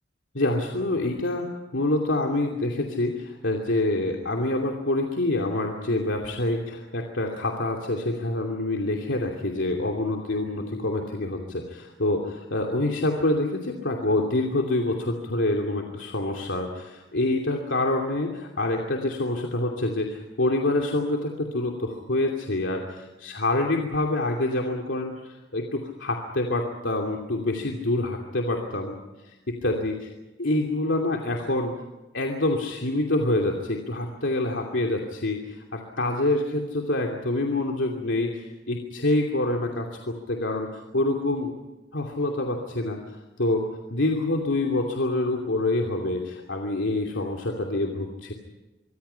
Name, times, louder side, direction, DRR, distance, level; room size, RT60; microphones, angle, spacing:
voice 1, 0.3-28.9 29.2-30.1 30.4-31.7 32.1-41.5 41.9-43.6 43.9-48.3, left 2 dB, 80° left, 1 dB, 2.7 m, -26 dB
25.0 x 25.0 x 5.8 m, 1.1 s
head